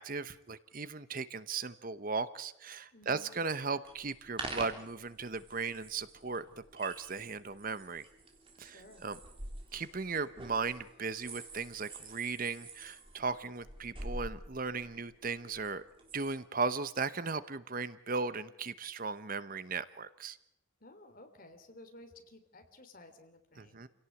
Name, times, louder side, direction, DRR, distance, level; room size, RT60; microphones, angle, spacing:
voice 1, 0.0-6.4 6.7-8.1 8.6-9.2 9.7-15.8 16.1-20.4 23.6-23.9, right 4 dB, 40° right, 14 dB, 0.9 m, -37 dB
voice 2, 2.9-3.3 8.6-9.1 20.8-23.8, left 1 dB, 40° left, 6 dB, 3.3 m, -55 dB
sound 1, 3.9-16.3, right 2 dB, 25° right, 3.8 m, -47 dB
28.0 x 17.5 x 8.4 m, 0.81 s
head